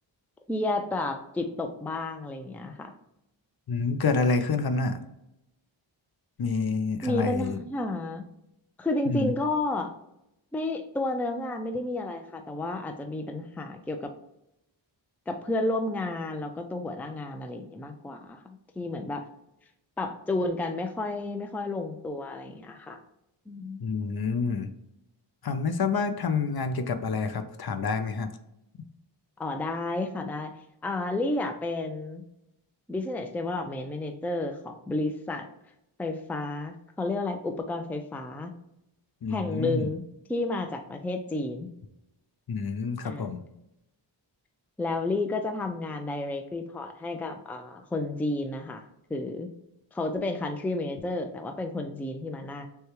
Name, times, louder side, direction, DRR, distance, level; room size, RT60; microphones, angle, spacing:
voice 1, 0.5-2.9 7.0-8.3 8.8-9.9 10.5-14.1 15.3-18.4 18.8-19.2 20.0-23.0 23.5-23.9 29.4-30.5 30.8-32.2 32.9-35.5 36.0-38.5 39.3-40.0 40.3-41.7 43.0-43.3 44.8-48.8 49.1-49.5 49.9-52.7, left 2 dB, 5° left, 6 dB, 0.4 m, -31 dB
voice 2, 3.7-5.0 6.4-7.6 9.1-9.3 23.8-24.7 25.4-28.3 39.2-39.9 42.5-43.4, left 4 dB, 55° left, 9 dB, 0.5 m, -28 dB
6.4 x 2.3 x 3.0 m, 0.84 s
wide cardioid pair, 75°, 46 cm